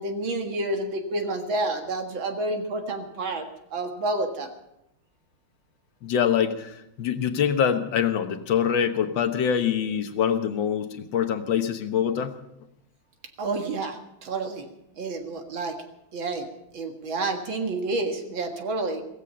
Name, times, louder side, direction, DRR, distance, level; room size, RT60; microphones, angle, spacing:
voice 1, 0.0-4.5 13.4-14.7 15.0-15.7 16.1-16.5 16.7-19.0, right 2 dB, 65° right, 4 dB, 2.5 m, -29 dB
voice 2, 6.0-12.3, left 8 dB, 65° left, 8 dB, 1.8 m, -24 dB
16.5 x 15.5 x 5.5 m, 0.83 s
omnidirectional pair, 2.3 m